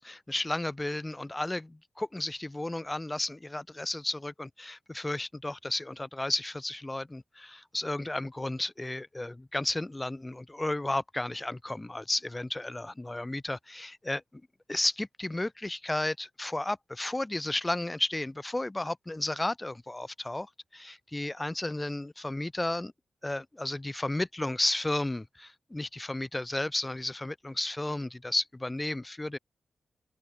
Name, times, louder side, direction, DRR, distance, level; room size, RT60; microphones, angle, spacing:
voice 1, 0.0-14.2 14.7-22.9 23.2-29.4, left 1 dB, 20° left, 0.6 m, -33 dB
open air
supercardioid pair, 45°, 0 cm